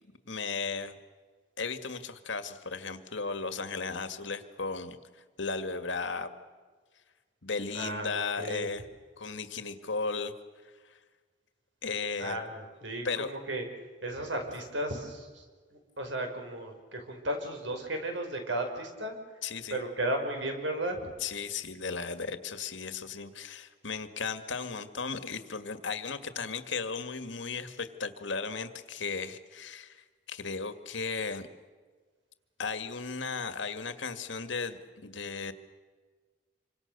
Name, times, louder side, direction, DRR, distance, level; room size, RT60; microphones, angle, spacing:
voice 1, 0.3-1.0 1.6-5.0 5.4-6.3 7.4-8.8 9.2-10.3 10.8-11.0 11.8-12.4 13.0-13.3 19.4-19.8 21.2-31.5 32.6-35.5, left 4 dB, 80° left, 10 dB, 1.9 m, -35 dB
voice 2, 7.7-8.7 12.2-13.6 14.0-15.5 15.7-19.1 19.7-21.1, right 1 dB, 80° right, 4 dB, 5.3 m, -34 dB
27.5 x 25.0 x 6.8 m, 1.4 s
head